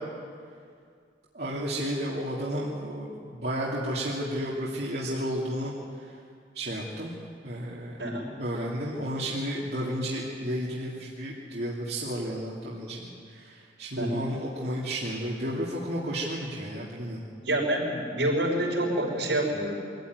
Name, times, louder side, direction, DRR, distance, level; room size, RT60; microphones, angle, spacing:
voice 1, 1.3-6.1 6.5-7.1 7.4-8.0 8.4-17.2, equal, 60° right, -6 dB, 2.7 m, -32 dB
voice 2, 8.0-8.3 14.0-14.3 17.4-19.8, right 1 dB, 85° right, -1 dB, 5.9 m, -27 dB
24.0 x 14.5 x 9.5 m, 2.2 s
head